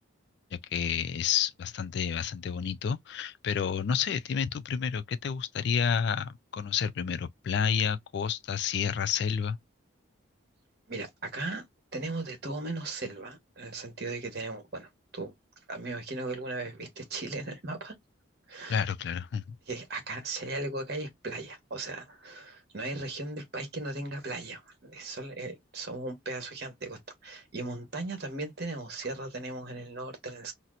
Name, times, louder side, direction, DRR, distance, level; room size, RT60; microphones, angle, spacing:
voice 1, 0.5-9.6 18.7-19.6, left 7 dB, 55° left, 0.3 m, -30 dB
voice 2, 10.9-11.6 11.9-15.3 15.7-17.9 18.5-18.9 19.7-30.5, right 2 dB, 50° right, 1.2 m, -37 dB
4.2 x 2.0 x 2.4 m
head